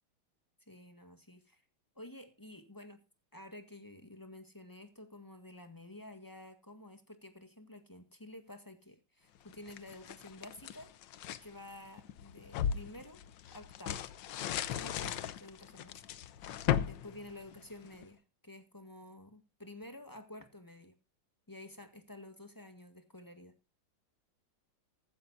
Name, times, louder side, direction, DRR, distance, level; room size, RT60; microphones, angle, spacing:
voice 1, 0.7-1.6 1.9-3.0 3.3-10.9 11.4-13.2 13.5-14.0 14.7-16.0 16.4-20.9 21.5-23.5, left 1 dB, 10° left, 8 dB, 1.5 m, -51 dB
sound 1, 9.5-11.5 12.0-18.1, left 10 dB, 65° left, 1.4 m, -37 dB
15.0 x 14.0 x 2.7 m, 0.27 s
omnidirectional pair, 2.3 m